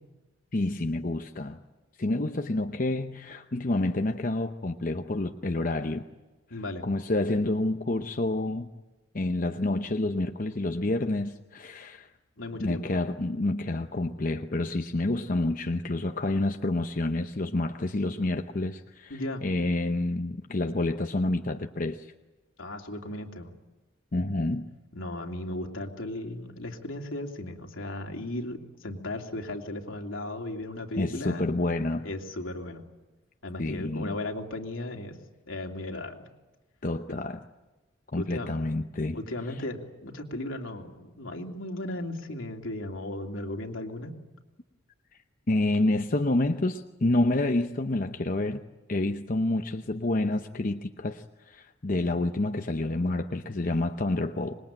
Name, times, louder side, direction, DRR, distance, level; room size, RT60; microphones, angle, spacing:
voice 1, 0.5-1.6 2.0-6.0 6.5-8.7 9.1-12.1 12.6-22.1 24.1-24.7 31.0-32.1 33.6-34.2 36.8-37.4 38.1-39.2 45.5-48.6 48.9-54.5, left 2 dB, 40° left, 6 dB, 0.8 m, -28 dB
voice 2, 6.5-6.8 12.4-12.9 19.1-19.4 22.6-23.5 24.9-31.5 32.0-32.8 33.4-35.1 35.5-36.3 38.2-38.5 39.1-44.1, left 1 dB, 80° left, 2 dB, 3.0 m, -36 dB
26.0 x 21.5 x 8.9 m, 1.1 s
head